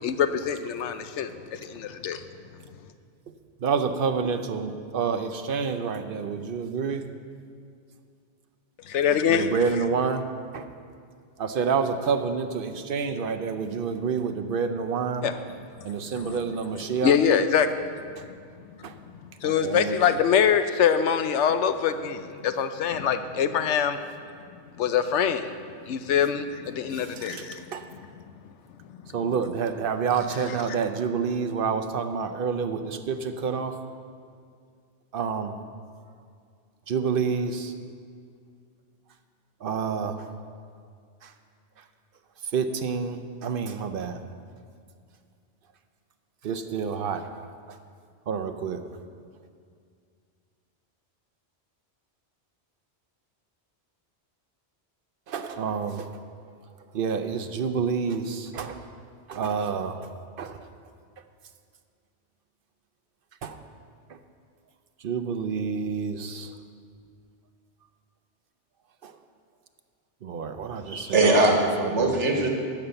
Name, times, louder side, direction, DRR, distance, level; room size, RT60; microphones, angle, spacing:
voice 1, 0.0-2.2 8.9-9.5 15.2-15.4 15.8-16.3 17.0-17.7 19.4-24.0 24.7-25.5 25.8-27.6, left 8 dB, 80° left, 10 dB, 1.0 m, -24 dB
voice 2, 3.6-7.0 9.3-10.2 10.5-10.7 11.4-15.3 15.8-17.2 18.8-18.9 19.4-20.0 26.9-27.9 29.1-33.8 35.1-35.6 36.9-37.7 39.6-40.2 41.2-41.3 42.5-44.2 46.4-47.3 47.7-47.8 48.3-48.8 55.3-56.1 56.9-58.8 59.3-60.0 60.4-60.7 63.4-63.6 65.0-66.5 69.0-69.1 70.2-71.4 71.8-72.1, right 6 dB, 55° right, 8 dB, 0.8 m, -28 dB
voice 3, 70.9-72.5, right 2 dB, 85° right, 2 dB, 1.7 m, -21 dB
12.0 x 5.7 x 7.9 m, 2.2 s
omnidirectional pair, 1.2 m